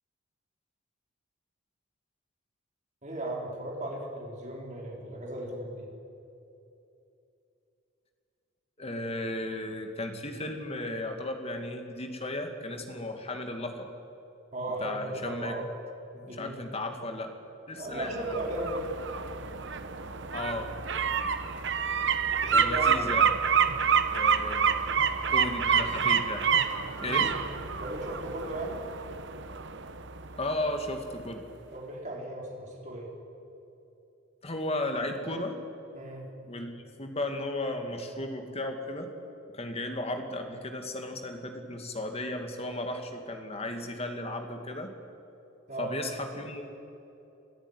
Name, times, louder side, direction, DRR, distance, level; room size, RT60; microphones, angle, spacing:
voice 1, 3.0-5.9 14.5-15.6 16.1-16.5 17.7-18.9 22.4-23.2 27.0-27.4 27.8-28.8 31.7-33.1 35.9-36.3 45.7-45.9, right 1 dB, 35° right, -1 dB, 4.6 m, -36 dB
voice 2, 8.8-13.9 14.8-15.6 16.3-17.4 17.7-18.3 20.3-20.8 22.5-23.3 24.1-24.8 25.3-26.5 27.0-27.4 30.4-31.5 34.4-35.6 36.5-39.1 39.5-44.9 45.8-46.6, left 1 dB, 30° left, 5 dB, 2.2 m, -35 dB
sound 1, 18.0-30.8 31.2-31.3, right 6 dB, 60° right, 1.1 m, -28 dB
24.5 x 14.0 x 9.9 m, 2.8 s
head